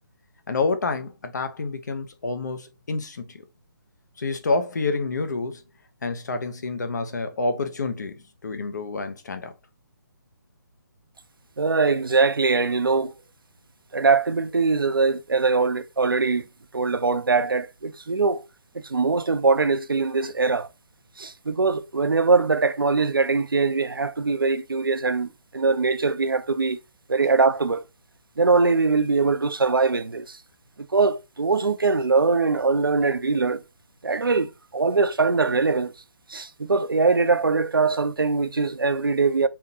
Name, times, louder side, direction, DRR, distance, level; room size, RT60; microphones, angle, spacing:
voice 1, 0.5-3.4 4.2-5.6 6.0-9.5, left 3 dB, 55° left, 0.7 m, -28 dB
voice 2, 11.6-13.1 13.9-16.5 16.7-18.4 18.7-20.7 21.2-26.8 27.1-27.8 28.4-30.4 30.8-33.6 34.0-35.9 36.3-39.5, right 4 dB, 80° right, 0.4 m, -22 dB
3.5 x 2.9 x 2.7 m
figure-of-eight pair, 140°, 12 cm